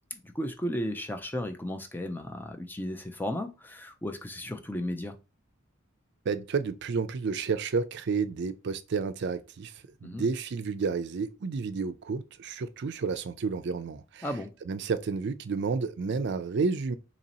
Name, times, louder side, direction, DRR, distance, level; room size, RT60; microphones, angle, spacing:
voice 1, 0.1-5.2 10.0-10.3 14.2-14.5, left 1 dB, 10° left, 0.4 m, -34 dB
voice 2, 6.3-14.3 14.7-16.9, right 5 dB, 55° right, 0.4 m, -31 dB
2.9 x 2.8 x 4.1 m
head